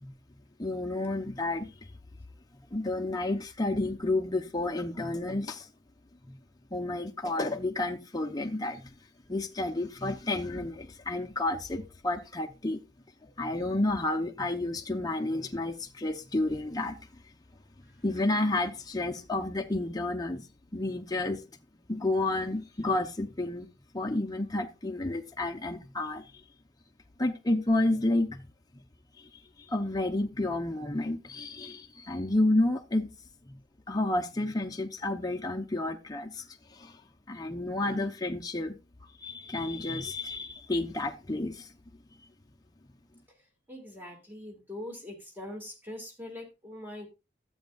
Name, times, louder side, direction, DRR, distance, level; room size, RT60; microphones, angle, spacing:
voice 1, 0.6-1.7 2.7-5.7 6.2-6.4 6.7-8.9 9.3-12.8 13.2-17.0 18.0-20.4 20.7-21.4 21.9-23.7 23.9-26.3 27.2-28.5 29.2-29.3 29.7-33.1 33.5-33.6 33.9-36.5 36.7-37.0 37.3-38.8 39.2-41.7, left 2 dB, 20° left, 0.8 m, -30 dB
voice 2, 43.7-47.1, left 1 dB, 10° right, 2.0 m, -42 dB
13.0 x 7.9 x 2.4 m
head